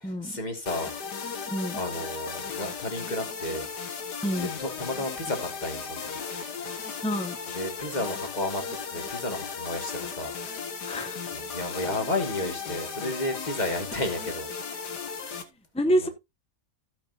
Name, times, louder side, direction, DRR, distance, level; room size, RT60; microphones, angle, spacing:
voice 1, 0.0-1.5 1.7-3.7 4.3-6.2 7.5-10.3 11.3-14.9 15.9-16.1, left 2 dB, 25° left, 2.2 m, -33 dB
sound 1, 0.7-15.4, left 6 dB, 80° left, 2.0 m, -36 dB
voice 2, 1.5-1.8 4.2-4.5 7.0-7.4 10.8-11.2 15.2-15.4 15.7-16.1, equal, 10° left, 0.3 m, -27 dB
15.5 x 5.8 x 2.8 m
omnidirectional pair, 1.8 m